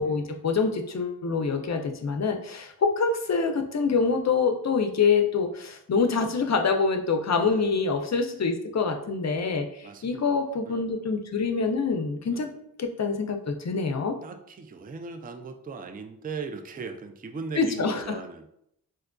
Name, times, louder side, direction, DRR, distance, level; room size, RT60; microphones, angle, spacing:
voice 1, 0.0-12.5 12.8-14.2 17.5-18.2, left 4 dB, 45° left, 5 dB, 0.5 m, -26 dB
voice 2, 7.3-7.7 9.8-10.4 10.7-10.9 12.3-12.5 14.2-18.5, right 4 dB, 25° right, 7 dB, 0.3 m, -39 dB
4.3 x 2.4 x 2.2 m, 0.74 s
cardioid pair, 50°, 37 cm